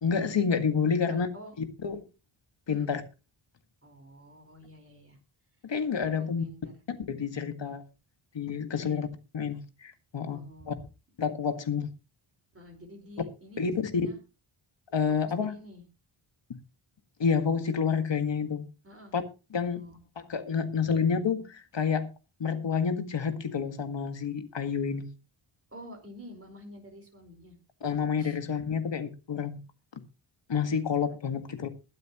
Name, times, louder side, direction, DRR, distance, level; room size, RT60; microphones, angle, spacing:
voice 1, 0.0-1.3 1.8-2.0 2.7-3.0 5.6-6.4 7.1-7.8 8.3-9.1 9.3-10.4 10.7-10.8 11.2-11.9 13.6-13.8 14.9-15.5 17.2-18.7 19.1-19.2 19.5-19.9 20.2-22.1 22.4-25.1 27.8-29.6 30.5-31.7, left 6 dB, 60° left, 1.9 m, -29 dB
voice 2, 0.9-1.6 2.7-3.0 3.8-5.2 6.0-6.7 8.7-9.1 10.3-10.9 12.5-14.2 15.2-15.8 18.8-19.2 19.6-20.0 25.7-27.6 28.2-28.4, equal, 25° right, 4.5 m, -49 dB
22.0 x 7.7 x 3.0 m
wide cardioid pair, 105°, 49 cm